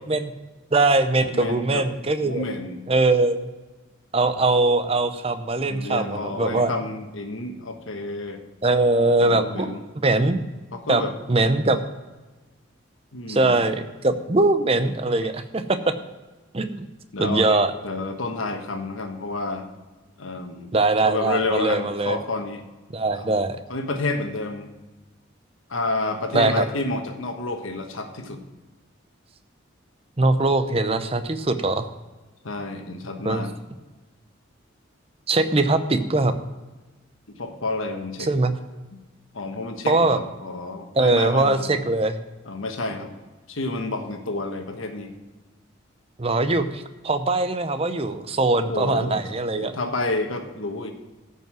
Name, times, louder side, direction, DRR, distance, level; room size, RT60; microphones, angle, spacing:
voice 1, 0.7-2.4 2.9-3.5 4.1-6.7 8.6-9.7 10.0-10.4 10.9-11.0 11.3-11.8 13.3-15.9 16.5-16.8 17.2-17.7 20.7-22.2 22.9-23.6 26.3-26.6 30.2-31.9 33.2-33.4 35.3-36.3 38.2-38.5 39.9-40.2 41.0-42.2 46.2-49.7, right 2 dB, 30° right, 10 dB, 0.7 m, -21 dB
voice 2, 1.3-1.9 2.2-2.8 5.7-8.4 9.2-9.8 10.7-11.1 13.1-13.6 17.1-19.7 20.2-20.7 21.1-22.6 23.1-23.3 23.7-24.7 25.7-28.4 32.4-33.5 37.3-38.3 39.3-41.7 42.4-43.1 43.5-45.1 48.6-49.2 49.6-50.9, left 2 dB, 90° left, 5 dB, 1.3 m, -29 dB
14.0 x 5.5 x 6.1 m, 1.2 s
head